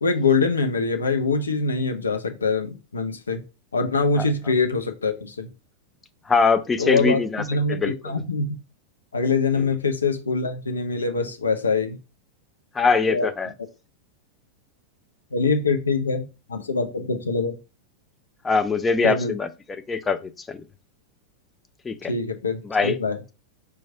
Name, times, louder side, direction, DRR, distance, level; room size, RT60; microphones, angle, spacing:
voice 1, 0.0-3.4 3.7-5.5 6.8-8.6 9.1-12.0 13.1-13.3 15.3-17.6 19.0-19.3 22.1-23.2, left 4 dB, 75° left, 0.6 m, -24 dB
voice 2, 6.3-8.2 9.5-9.6 12.7-13.5 18.4-19.5 19.9-20.6 21.8-22.1 22.6-23.0, left 4 dB, 15° left, 0.4 m, -23 dB
4.6 x 2.3 x 4.4 m
figure-of-eight pair, 90°, 0 cm